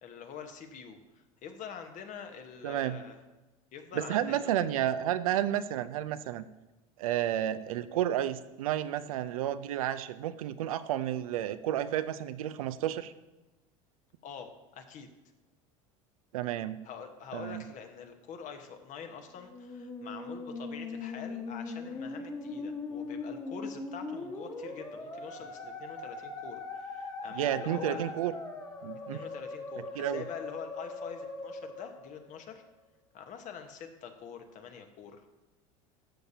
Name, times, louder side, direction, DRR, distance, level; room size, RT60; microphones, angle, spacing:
voice 1, 0.0-3.2 3.7-4.6 14.2-15.1 16.8-28.1 29.1-32.6 33.1-35.2, left 7 dB, 45° left, 6 dB, 1.2 m, -45 dB
voice 2, 2.6-3.0 3.9-6.4 7.0-13.1 16.3-16.8 17.3-17.6 27.3-28.3 28.8-29.2 30.0-30.2, right 11 dB, 85° right, 13 dB, 0.5 m, -31 dB
Musical instrument, 19.3-32.7, left 3 dB, 20° left, 1.5 m, -40 dB
12.5 x 6.6 x 2.8 m, 1.1 s
hypercardioid pair, 95°, 18 cm